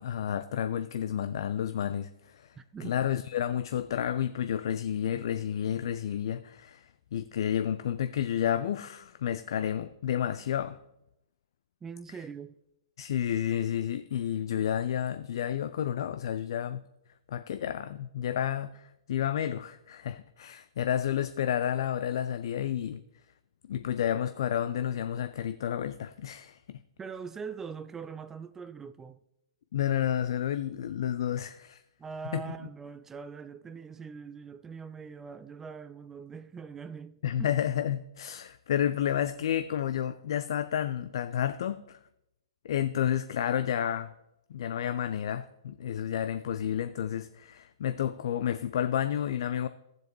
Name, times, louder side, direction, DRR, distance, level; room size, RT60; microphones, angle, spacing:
voice 1, 0.0-2.5 2.8-10.8 13.0-16.8 17.3-23.0 23.7-26.8 29.7-31.8 32.3-32.4 37.2-42.0 42.6-44.1 44.5-49.7, left 10 dB, 55° left, 0.4 m, -31 dB
voice 2, 2.6-2.9 11.8-12.6 27.0-29.2 32.0-37.5, right 6 dB, 15° right, 0.3 m, -42 dB
15.0 x 7.4 x 3.0 m
figure-of-eight pair, 115°, 3 cm